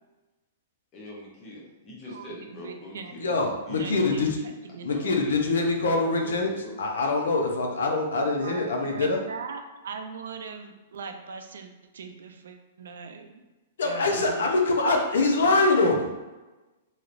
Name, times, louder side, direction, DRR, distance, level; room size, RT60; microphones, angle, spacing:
voice 1, 0.9-3.3 3.6-4.5 4.9-5.4 6.0-6.8, left 1 dB, 15° left, -4 dB, 0.6 m, -42 dB
voice 2, 2.1-3.3 3.8-5.2 8.2-13.4 13.8-14.5, right 5 dB, 80° right, 5 dB, 0.4 m, -40 dB
voice 3, 3.2-4.3 4.8-9.2 13.8-16.1, left 3 dB, 80° left, 2 dB, 0.6 m, -24 dB
3.1 x 2.7 x 2.5 m, 1.1 s
hypercardioid pair, 180°, 0 cm